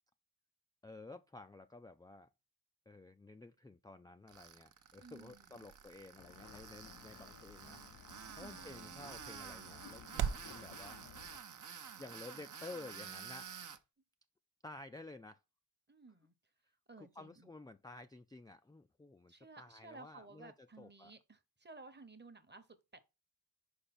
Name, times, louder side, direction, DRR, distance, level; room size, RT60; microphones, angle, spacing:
voice 1, 0.8-2.3 2.9-7.8 8.4-11.0 12.0-13.5 14.6-15.4 17.0-21.1, left 2 dB, 10° left, 0.3 m, -52 dB
Tools, 4.3-13.8, right 7 dB, 50° right, 0.7 m, -51 dB
sound 1, 4.3-10.5, right 8 dB, 80° right, 0.5 m, -46 dB
voice 2, 5.0-5.7 8.3-8.7 15.9-16.3 16.9-17.5 19.3-23.0, right 3 dB, 25° right, 1.0 m, -56 dB
sound 2, 6.2-11.4, left 10 dB, 65° left, 0.5 m, -57 dB
5.2 x 4.9 x 4.3 m
wide cardioid pair, 85°, 39 cm